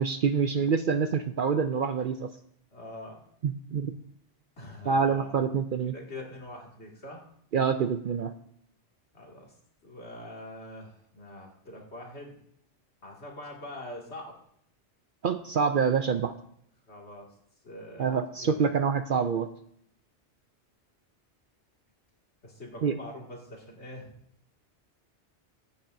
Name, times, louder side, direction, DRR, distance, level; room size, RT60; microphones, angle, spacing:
voice 1, 0.0-2.3 3.4-3.9 4.9-5.9 7.5-8.3 15.2-16.3 18.0-19.5 22.8-23.0, right 6 dB, 60° right, 9 dB, 0.6 m, -26 dB
voice 2, 2.7-3.2 4.6-5.3 5.9-7.2 9.1-9.5 9.8-12.3 13.0-14.3 16.9-17.4 17.6-18.6 22.4-24.2, left 1 dB, 65° left, -1 dB, 2.6 m, -44 dB
15.5 x 8.6 x 2.6 m, 0.68 s
omnidirectional pair, 1.2 m